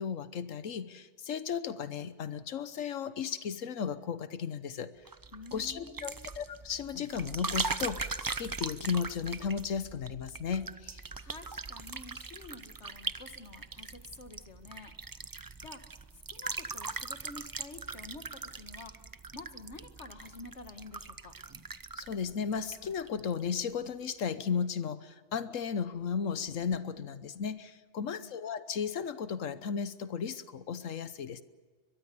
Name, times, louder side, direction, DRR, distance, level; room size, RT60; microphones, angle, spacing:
voice 1, 0.0-4.9 5.5-11.0 22.0-31.4, left 6 dB, 90° left, 13 dB, 1.4 m, -35 dB
sound 1, 5.1-23.4 23.7-24.1, right 4 dB, 30° right, 0.4 m, -40 dB
voice 2, 5.3-6.3 11.1-15.2 15.6-15.8 16.1-19.0 19.3-21.3 28.0-28.3, left 2 dB, 65° left, 8 dB, 2.0 m, -49 dB
23.0 x 22.0 x 6.9 m, 1.4 s
omnidirectional pair, 1.3 m